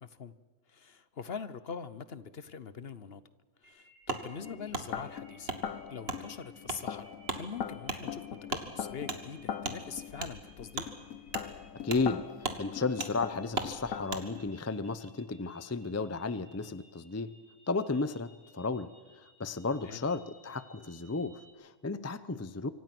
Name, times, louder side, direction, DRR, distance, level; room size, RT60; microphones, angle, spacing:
voice 1, 0.0-0.3 0.7-3.2 3.6-5.5 5.8-10.9 19.8-20.0, left 6 dB, 50° left, 14 dB, 1.1 m, -43 dB
sound 1, 3.6-21.5, equal, 30° right, 6.2 m, -60 dB
Wood, 4.1-4.2 4.7-4.9 5.5-5.6 6.1-6.2 6.7-6.8 7.2-7.4 7.8-8.0 8.5-8.7 9.1-9.2 9.6-9.8 10.2-10.3 10.7-10.9 11.3-11.5 11.9-12.1 12.4-12.6 13.0-13.1 13.5-13.7 14.1-14.2, right 3 dB, 50° right, 2.0 m, -35 dB
sound 2, 4.4-14.5, left 8 dB, 80° left, 1.3 m, -42 dB
voice 2, 11.8-17.3 17.7-18.9 19.1-22.7, left 3 dB, 20° left, 14 dB, 0.5 m, -34 dB
25.5 x 25.0 x 6.1 m, 1.3 s
omnidirectional pair, 1.4 m